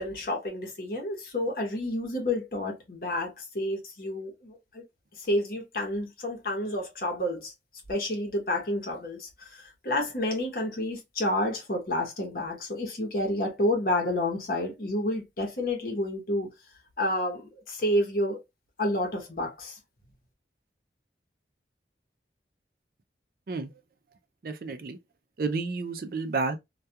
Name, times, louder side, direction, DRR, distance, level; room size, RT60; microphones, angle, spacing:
voice 1, 0.0-4.8 5.2-7.5 7.9-16.5 17.0-18.4 18.8-19.8, left 1 dB, 55° left, 0.9 m, -30 dB
voice 2, 24.4-25.0 25.4-26.6, right 4 dB, 55° right, 0.4 m, -30 dB
2.3 x 2.3 x 2.7 m
head